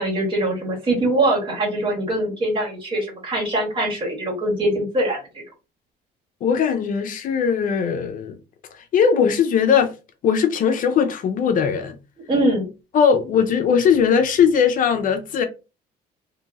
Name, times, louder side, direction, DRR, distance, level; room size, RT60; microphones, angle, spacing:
voice 1, 0.0-5.4 12.3-12.7, right 1 dB, 30° right, 1.7 m, -22 dB
voice 2, 6.4-8.4 8.7-9.9 10.2-12.0 12.9-15.4, left 7 dB, 55° left, 0.5 m, -19 dB
2.9 x 2.6 x 2.4 m
cardioid pair, 110°, 17 cm